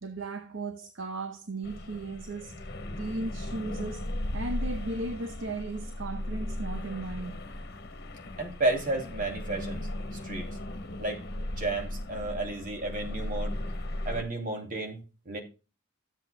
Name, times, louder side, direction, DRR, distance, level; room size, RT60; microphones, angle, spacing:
voice 1, 0.0-2.7 3.0-7.4, right 2 dB, 65° right, 0.9 m, -36 dB
sound 1, 1.6-14.2, left 1 dB, 55° left, 1.2 m, -37 dB
voice 2, 8.4-9.9 10.2-10.5 11.0-11.2 11.6-13.6 14.0-15.0 15.2-15.4, right 2 dB, 45° right, 2.7 m, -32 dB
13.5 x 7.9 x 2.2 m
head